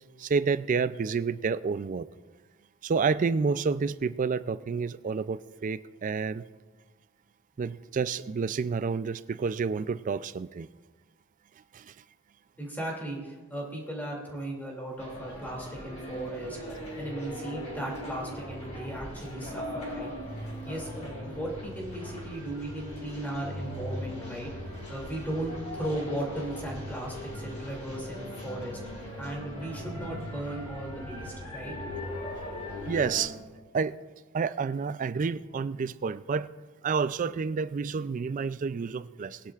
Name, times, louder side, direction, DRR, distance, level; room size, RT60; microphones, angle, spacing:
voice 1, 0.2-2.1 2.8-6.4 7.6-10.7 11.7-11.9 32.9-33.3 33.7-34.0 34.3-36.5 36.8-39.4, right 5 dB, 35° right, 0.3 m, -29 dB
voice 2, 12.6-16.6 17.0-20.1 20.7-28.8 29.2-31.8, right 1 dB, 10° left, 2.5 m, -36 dB
sound 1, 15.0-33.3, left 1 dB, 30° left, 4.4 m, -39 dB
20.5 x 11.0 x 2.4 m
head